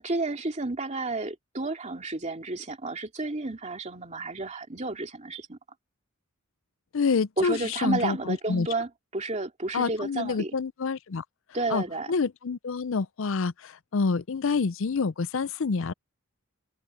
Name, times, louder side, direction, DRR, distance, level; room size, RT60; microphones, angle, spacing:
voice 1, 0.0-5.6 7.4-10.5 11.5-12.1, right 2 dB, 35° right, 2.6 m, -31 dB
voice 2, 6.9-8.7 9.7-11.2 11.7-15.9, left 4 dB, 65° left, 0.5 m, -27 dB
open air
head